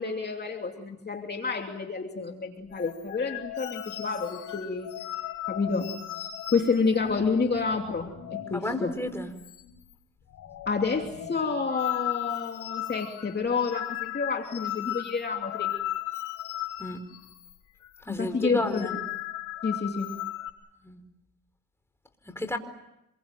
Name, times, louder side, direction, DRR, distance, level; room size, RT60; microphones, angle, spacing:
voice 1, 0.0-4.9 5.5-5.9 6.5-8.9 10.7-15.7 18.1-18.9 19.6-20.1, left 4 dB, 35° left, 3 dB, 2.9 m, -29 dB
sound 1, 2.7-8.7 8.9-9.1 9.4-9.9 10.2-17.6 17.8-18.0 18.5-20.5, left 14 dB, 75° left, 4.9 m, -36 dB
voice 2, 8.5-9.4 16.8-17.1 18.0-19.0 20.8-21.0 22.2-22.6, left 1 dB, 10° left, 6 dB, 4.5 m, -32 dB
27.0 x 23.0 x 9.1 m, 0.85 s
cardioid pair, 90°, 30 cm